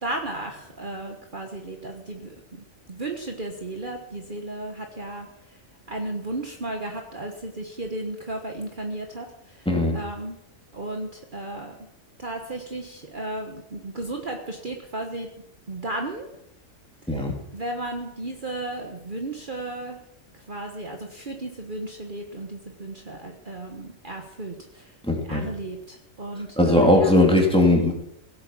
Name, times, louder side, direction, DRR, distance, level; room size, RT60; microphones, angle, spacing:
voice 1, 0.0-2.3 2.9-5.3 5.9-9.6 9.9-10.4 10.7-11.7 12.2-15.3 15.7-16.3 17.5-20.0 20.5-24.9 25.3-27.1, right 2 dB, 40° right, 3 dB, 1.5 m, -34 dB
voice 2, 9.7-10.0 17.1-17.3 25.1-25.5 26.6-27.9, left 1 dB, 5° left, 0 dB, 3.0 m, -19 dB
17.0 x 8.6 x 7.4 m, 0.79 s
omnidirectional pair, 1.3 m